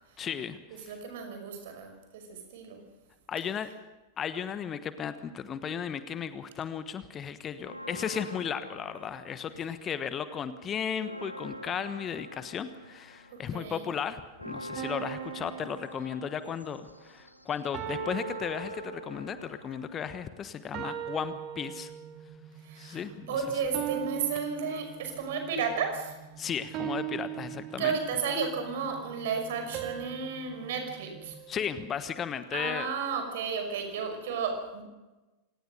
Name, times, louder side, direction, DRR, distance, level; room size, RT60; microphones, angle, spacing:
voice 1, 0.2-0.9 3.3-3.7 4.2-21.9 22.8-23.4 26.4-27.9 31.5-32.9, left 8 dB, 25° left, 12 dB, 1.2 m, -35 dB
voice 2, 0.7-2.8 13.3-13.9 22.6-23.0 23.3-26.2 27.8-31.3 32.5-34.8, right 5 dB, 55° right, 6 dB, 5.9 m, -33 dB
Church bell, 7.6-10.0 10.3-10.4 10.8-20.8, equal, 90° right, 1.2 m, -45 dB
sound 1, 14.8-16.7 17.7-19.4 20.7-22.3 23.7-25.4 26.7-28.4 29.7-32.1, right 10 dB, 35° right, 2.0 m, -39 dB
sound 2, 21.3-31.3, right 6 dB, 20° right, 1.9 m, -51 dB
26.0 x 19.0 x 6.6 m, 1.1 s
figure-of-eight pair, 90°, 0 cm